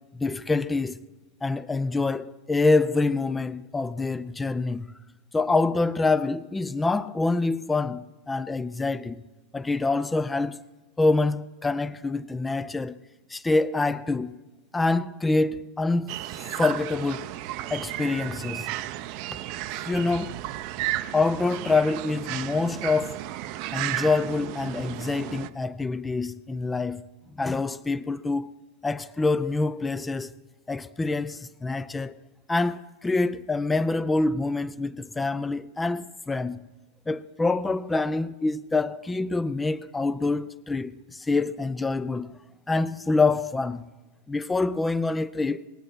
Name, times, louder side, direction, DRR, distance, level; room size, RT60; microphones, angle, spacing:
voice 1, 0.1-1.0 1.4-4.9 5.3-9.2 9.5-10.6 11.0-13.0 13.3-14.4 14.7-16.2 16.6-17.3 17.7-18.7 19.8-20.4 21.1-23.3 23.7-27.0 27.3-28.5 28.8-30.3 30.7-32.2 32.5-36.6 37.1-42.3 42.7-43.9 44.3-45.6, left 3 dB, 10° left, 0.4 m, -26 dB
sound 1, 16.1-25.5, right 14 dB, 45° right, 0.6 m, -34 dB
20.5 x 8.5 x 5.9 m
figure-of-eight pair, 90°, 0 cm